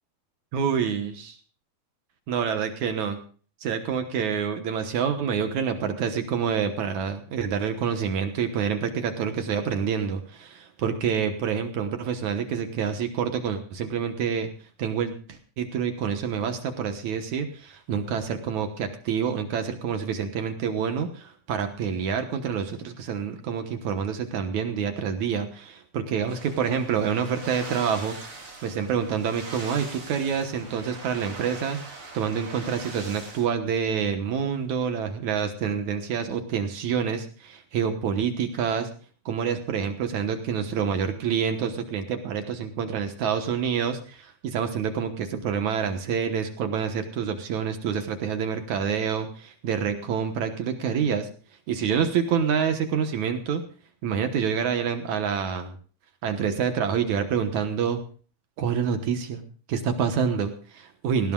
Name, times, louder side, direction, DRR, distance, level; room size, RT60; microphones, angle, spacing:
voice 1, 0.5-1.4 2.3-3.2 3.6-14.5 14.8-28.2 28.6-31.8 32.1-38.9 39.3-51.3 51.7-53.6 54.0-55.7 56.2-58.0 58.6-59.4 59.7-61.3, right 7 dB, 65° right, 7 dB, 2.2 m, -27 dB
sound 1, 26.3-33.5, right 3 dB, 35° right, 4.3 m, -42 dB
18.5 x 17.0 x 2.4 m, 0.40 s
omnidirectional pair, 4.3 m